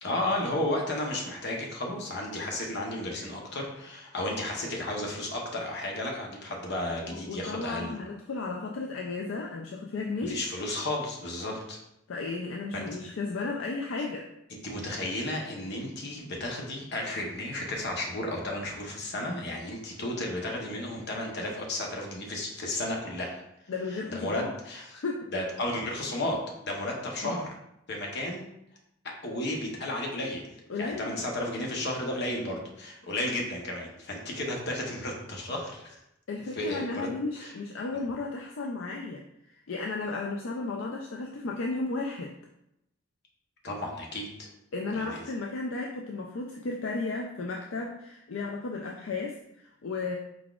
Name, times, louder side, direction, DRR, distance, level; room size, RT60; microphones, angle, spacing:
voice 1, 0.0-8.0 10.2-11.8 12.7-12.8 14.5-23.4 24.1-24.9 25.3-27.5 27.9-28.4 29.2-30.4 30.8-36.0 36.6-37.1 37.4-37.5 43.6-44.5 44.9-45.3, left 1 dB, 60° left, 0 dB, 0.9 m, -33 dB
voice 2, 7.0-10.4 12.1-14.3 23.7-24.5 24.9-25.3 27.2-27.4 30.7-31.2 36.3-42.3 44.7-50.1, left 3 dB, 75° left, 0 dB, 0.4 m, -34 dB
4.6 x 4.0 x 2.4 m, 0.81 s
head